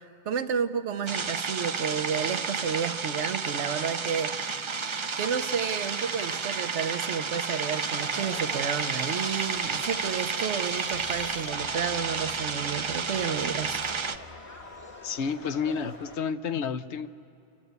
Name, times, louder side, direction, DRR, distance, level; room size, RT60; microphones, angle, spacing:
voice 1, 0.3-4.7 5.2-13.8, right 7 dB, 80° right, 9 dB, 1.1 m, -31 dB
sound 1, 1.1-14.2, right 5 dB, 40° right, 0.4 m, -31 dB
Crowd, 8.0-16.2, left 2 dB, 30° left, 1.3 m, -45 dB
voice 2, 15.0-17.1, left 6 dB, 75° left, 12 dB, 1.0 m, -30 dB
29.5 x 13.0 x 8.1 m, 2.8 s
omnidirectional pair, 1.2 m